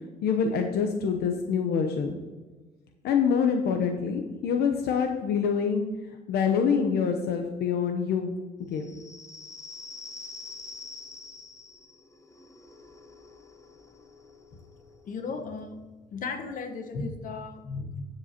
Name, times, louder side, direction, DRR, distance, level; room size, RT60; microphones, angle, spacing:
voice 1, 0.2-2.1 3.0-5.9 6.3-8.3 8.7-8.9, left 6 dB, 70° left, 5 dB, 0.9 m, -26 dB
sound 1, 8.7-16.0, left 3 dB, 15° left, 1.0 m, -46 dB
voice 2, 15.0-15.8 16.1-18.1, left 4 dB, 55° left, 5 dB, 1.2 m, -35 dB
13.5 x 7.8 x 2.9 m, 1.3 s
cardioid pair, 110°, 17 cm